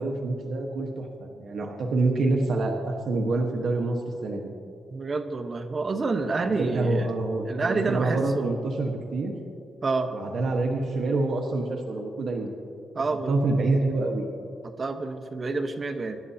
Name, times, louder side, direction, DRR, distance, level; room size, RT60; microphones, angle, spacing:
voice 1, 0.0-4.5 6.4-9.3 10.1-12.5 13.3-14.3, right 2 dB, 70° right, 1 dB, 1.3 m, -27 dB
voice 2, 4.9-7.1 7.5-8.6 9.8-10.1 12.9-13.4 14.6-16.2, right 3 dB, 40° right, 7 dB, 1.1 m, -28 dB
24.5 x 11.5 x 2.9 m, 2.5 s
cardioid pair, 85°, 0 cm